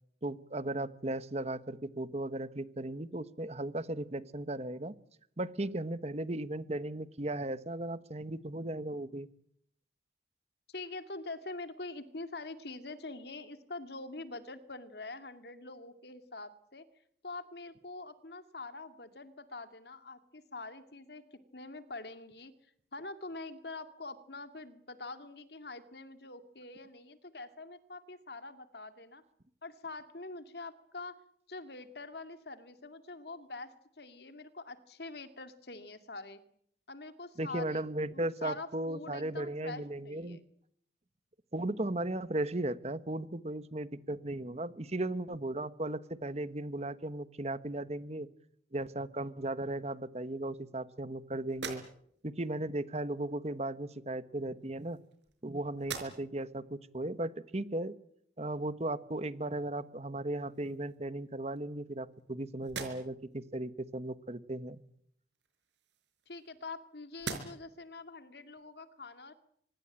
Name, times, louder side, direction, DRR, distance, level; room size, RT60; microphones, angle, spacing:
voice 1, 0.2-4.9 5.4-9.3 37.4-40.4 41.5-48.3 48.7-51.8 52.2-55.0 55.4-57.9 58.4-64.8, right 1 dB, 35° right, 14 dB, 1.1 m, -36 dB
voice 2, 10.7-16.8 17.2-22.5 22.9-29.2 29.6-31.2 31.5-36.4 36.9-40.4 66.3-69.3, left 3 dB, 60° left, 10 dB, 2.2 m, -45 dB
sound 1, 51.5-52.3 53.4-53.6 54.5-55.4 55.8-56.5 57.0-57.1 59.7-59.9 60.3-61.0 61.6-62.3 62.6-63.3 65.3-66.8 67.1-67.8, right 5 dB, 80° right, 5.1 m, -45 dB
25.5 x 21.0 x 8.8 m, 0.71 s
head